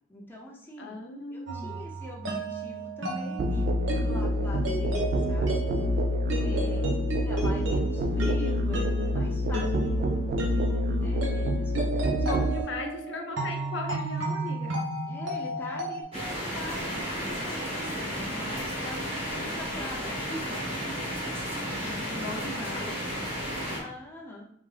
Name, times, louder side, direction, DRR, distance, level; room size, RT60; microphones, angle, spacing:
voice 1, 0.1-1.0 1.3-3.7 4.0-5.5 6.4-12.4 15.1-21.6 23.4-24.4, left 1 dB, 10° left, -3 dB, 0.6 m, -43 dB
voice 2, 0.8-1.8 6.4-7.0 12.2-14.8 18.8-19.2 21.8-23.1, left 2 dB, 65° left, 2 dB, 0.6 m, -38 dB
sound 1, 1.5-16.0, right 1 dB, 70° right, 1.0 m, -33 dB
Musical instrument, 3.4-12.6, equal, 45° right, 0.3 m, -27 dB
sound 2, 16.1-23.8, equal, 30° right, 1.4 m, -33 dB
3.5 x 3.5 x 3.3 m, 0.72 s
head